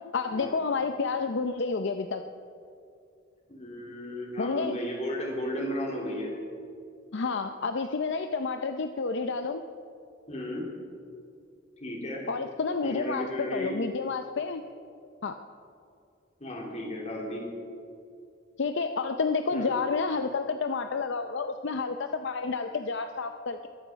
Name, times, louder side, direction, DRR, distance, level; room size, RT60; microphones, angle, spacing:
voice 1, 0.1-2.2 4.4-4.8 7.1-9.6 12.3-14.6 15.2-15.3 18.6-23.7, left 4 dB, 65° left, 7 dB, 0.6 m, -30 dB
voice 2, 3.5-6.3 10.3-10.6 11.8-12.2 12.8-13.7 16.4-17.5 19.5-19.7, equal, 35° left, -1 dB, 3.4 m, -34 dB
22.0 x 12.0 x 5.1 m, 2.4 s
head